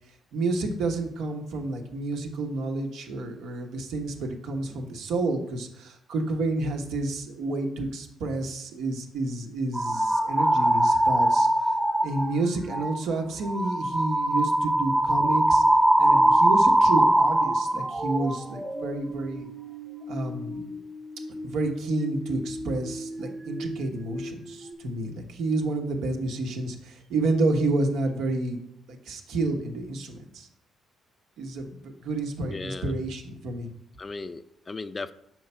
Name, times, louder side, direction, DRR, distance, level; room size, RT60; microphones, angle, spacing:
voice 1, 0.3-11.7 12.0-15.6 16.0-19.5 20.1-20.7 21.4-28.6 28.9-30.5 31.4-33.7, right 2 dB, 85° right, 3 dB, 1.2 m, -30 dB
sound 1, 9.7-12.4 12.7-13.0 13.4-23.8 24.0-24.7, right 1 dB, 15° right, 0.8 m, -24 dB
voice 2, 32.4-32.9 34.0-35.1, left 3 dB, 30° left, 12 dB, 0.4 m, -36 dB
6.4 x 4.7 x 5.5 m, 0.76 s
cardioid pair, 90°, 0 cm